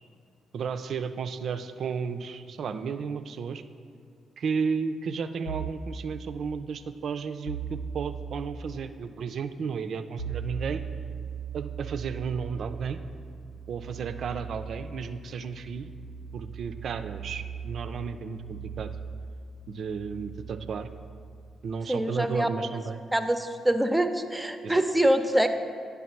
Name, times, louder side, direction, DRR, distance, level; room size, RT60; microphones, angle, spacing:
voice 1, 0.5-3.6 4.4-10.8 11.5-13.0 13.7-15.9 16.3-18.9 19.7-20.9 21.6-23.0 24.6-24.8, right 6 dB, 60° right, 10 dB, 0.4 m, -33 dB
sound 1, 5.5-5.9 7.5-8.4 10.2-21.5, right 6 dB, 75° left, 0.4 m, -39 dB
voice 2, 21.9-22.5 23.1-25.5, right 1 dB, 10° right, 8 dB, 0.6 m, -24 dB
9.2 x 3.5 x 5.8 m, 2.2 s
hypercardioid pair, 40°, 0 cm